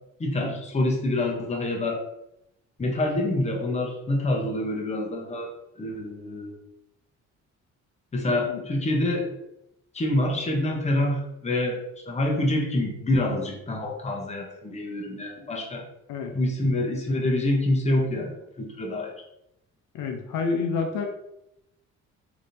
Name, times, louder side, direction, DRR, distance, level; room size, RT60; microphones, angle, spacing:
voice 1, 0.2-2.0 2.8-5.5 5.8-6.6 8.1-9.3 9.9-11.8 12.1-15.8 16.3-19.1, left 1 dB, 20° left, 0 dB, 0.8 m, -26 dB
voice 2, 19.9-21.1, left 4 dB, 85° left, 4 dB, 0.6 m, -28 dB
3.3 x 2.8 x 2.6 m, 0.83 s
cardioid pair, 90°, 30 cm